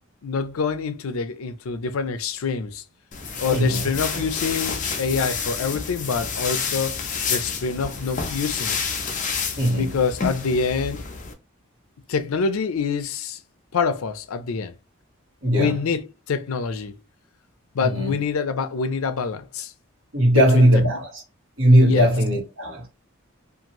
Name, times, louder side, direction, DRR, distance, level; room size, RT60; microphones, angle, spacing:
voice 1, 0.2-2.8 3.4-7.0 7.3-8.8 9.8-11.1 12.1-13.4 13.7-14.8 15.5-16.9 17.7-19.7 20.3-20.4 21.8-22.1, left 5 dB, 85° left, 0.5 m, -26 dB
sound 1, 3.1-11.3, left 5 dB, 35° left, 0.5 m, -29 dB
voice 2, 3.5-3.9 9.6-9.9 15.4-15.7 17.8-18.2 20.1-21.2 21.6-22.9, equal, 70° right, 1.3 m, -18 dB
2.7 x 2.5 x 2.9 m
head